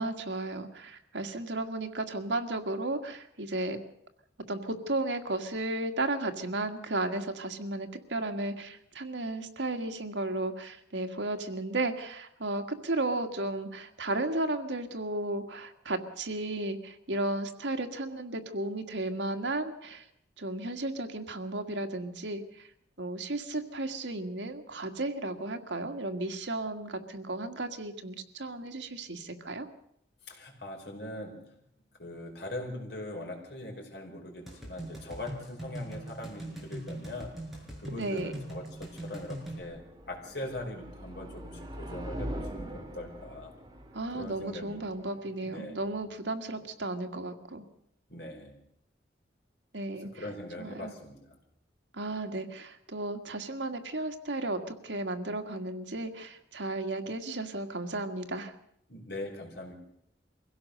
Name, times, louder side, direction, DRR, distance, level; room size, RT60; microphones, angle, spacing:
voice 1, 0.0-3.8 4.5-20.1 20.4-22.7 23.0-29.7 37.9-38.3 43.9-47.7 49.7-50.2 50.6-50.9 51.9-58.5, right 2 dB, 80° right, 1.9 m, -34 dB
voice 2, 30.3-31.6 32.0-37.4 37.8-39.8 40.1-43.5 44.1-44.8 45.4-45.8 48.1-48.6 50.2-51.3 58.9-59.7, left 1 dB, 60° left, 5.0 m, -41 dB
sound 1, 34.5-39.6, right 1 dB, ahead, 6.3 m, -41 dB
sound 2, 37.7-46.6, equal, 25° right, 2.7 m, -44 dB
24.0 x 16.5 x 6.7 m
head